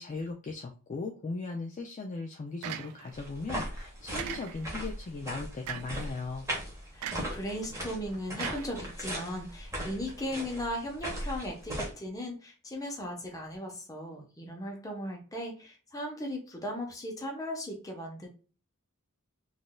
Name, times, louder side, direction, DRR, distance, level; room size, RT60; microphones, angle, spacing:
voice 1, 0.0-6.5, left 3 dB, 35° left, 3 dB, 0.3 m, -38 dB
sound 1, 2.6-3.3 4.2-4.8 5.7-6.1 7.0-7.4 8.4-9.3, right 9 dB, 80° right, 0.4 m, -40 dB
sound 2, 3.1-11.9, equal, 15° right, 1.0 m, -38 dB
voice 2, 6.9-18.3, equal, 15° left, 0 dB, 0.8 m, -37 dB
3.8 x 2.5 x 2.2 m, 0.37 s
head